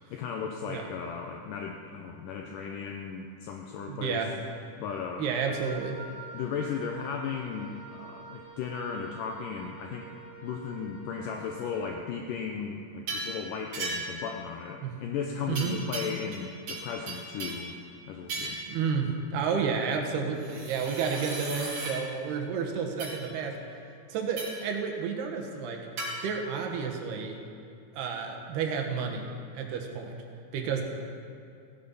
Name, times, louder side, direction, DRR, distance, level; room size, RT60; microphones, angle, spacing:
voice 1, 0.1-4.2 4.8-5.3 6.3-10.1 10.4-17.7 18.1-18.6, left 6 dB, 80° left, 2 dB, 2.0 m, -36 dB
voice 2, 3.9-4.3 5.2-6.0 14.8-14.9 15.5-15.8 18.7-23.6 24.1-27.4 27.9-29.3 29.5-30.2 30.5-30.8, right 6 dB, 85° right, 2 dB, 3.3 m, -31 dB
Wind instrument woodwind instrument, 5.5-12.0, right 5 dB, 10° right, 1.2 m, -47 dB
sound 1, 13.1-13.4 13.7-14.2 15.6-16.4 16.7-17.7 18.3-18.7 20.4-22.0 23.0-23.2 24.4-24.7 26.0-26.1, right 3 dB, 55° right, 5.0 m, -36 dB
16.0 x 11.0 x 5.6 m, 2.5 s
omnidirectional pair, 4.5 m